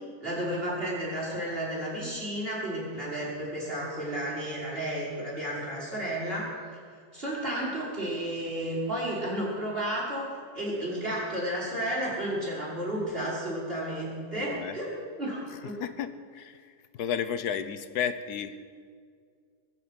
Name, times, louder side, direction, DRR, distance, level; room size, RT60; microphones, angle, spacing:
voice 1, 0.2-6.5 7.1-15.8, right 1 dB, 35° right, -6 dB, 6.0 m, -32 dB
voice 2, 14.4-14.8 15.8-18.6, left 8 dB, 75° left, 11 dB, 1.4 m, -33 dB
22.5 x 7.7 x 8.2 m, 2.1 s
omnidirectional pair, 1.7 m